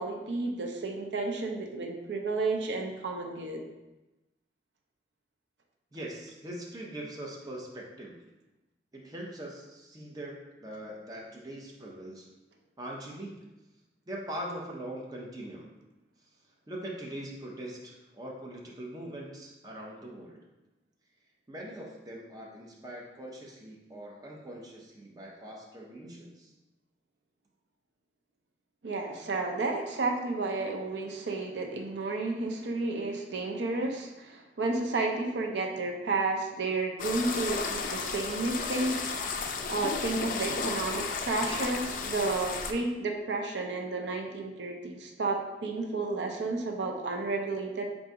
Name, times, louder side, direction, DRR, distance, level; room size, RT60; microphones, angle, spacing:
voice 1, 0.0-3.6 28.8-47.9, right 3 dB, 90° right, 2 dB, 0.5 m, -32 dB
voice 2, 5.9-8.2 8.9-12.3 12.8-13.3 14.1-15.7 16.7-20.4 21.5-26.5, right 1 dB, 20° right, -2 dB, 0.6 m, -42 dB
sound 1, 37.0-42.7, left 4 dB, 50° left, 0.3 m, -33 dB
3.8 x 2.6 x 4.6 m, 1.0 s
head